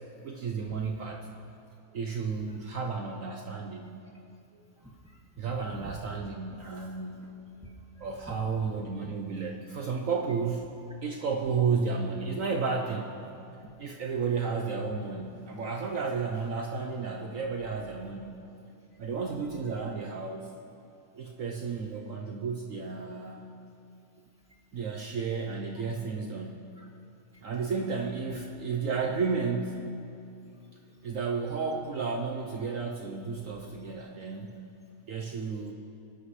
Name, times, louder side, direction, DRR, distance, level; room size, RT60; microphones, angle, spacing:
voice 1, 0.2-1.2 1.9-3.9 4.5-4.6 5.4-7.4 8.0-13.2 13.8-18.3 19.0-20.5 21.1-23.5 24.7-26.7 27.4-29.9 31.0-34.6 35.1-35.7, right 5 dB, 60° right, 2 dB, 1.1 m, -32 dB
voice 2, 4.8-6.0 7.6-8.3 13.6-14.0 24.5-24.6 26.8-26.9 27.3-27.4 30.5-31.0 35.3-35.4, right 1 dB, 5° right, -4 dB, 1.9 m, -49 dB
25.0 x 11.5 x 3.3 m, 2.5 s
omnidirectional pair, 1.7 m